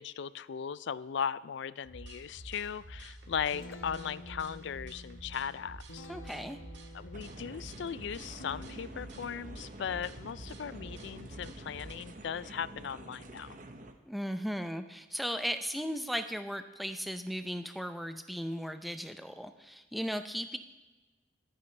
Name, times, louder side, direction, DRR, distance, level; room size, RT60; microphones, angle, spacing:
voice 1, 0.0-6.1 6.9-13.6, left 7 dB, 60° left, 18 dB, 0.4 m, -38 dB
sound 1, 1.8-11.9, right 1 dB, 65° right, 1.8 m, -49 dB
Guitar, 3.1-12.8, left 1 dB, 85° left, 1.2 m, -53 dB
voice 2, 6.1-6.6 14.0-20.6, equal, ahead, 8 dB, 0.5 m, -36 dB
sound 2, 7.1-13.9, right 1 dB, 40° right, 0.9 m, -48 dB
22.5 x 9.3 x 3.3 m, 1.2 s
head